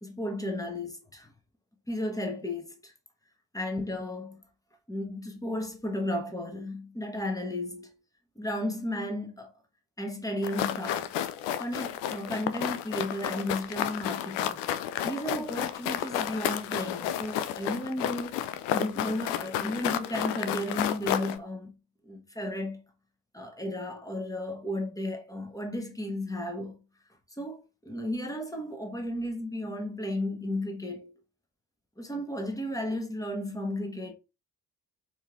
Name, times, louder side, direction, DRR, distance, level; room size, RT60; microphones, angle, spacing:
voice 1, 0.0-1.3 1.9-2.9 3.5-4.4 4.9-8.0 8.4-9.5 10.0-11.1 11.6-14.6 15.0-21.8 22.0-22.8 23.3-26.8 27.4-31.2 32.0-34.1, left 1 dB, 5° left, 1.3 m, -34 dB
sound 1, 10.4-21.4, left 11 dB, 60° left, 0.6 m, -31 dB
4.4 x 3.2 x 3.6 m
figure-of-eight pair, 40°, 48 cm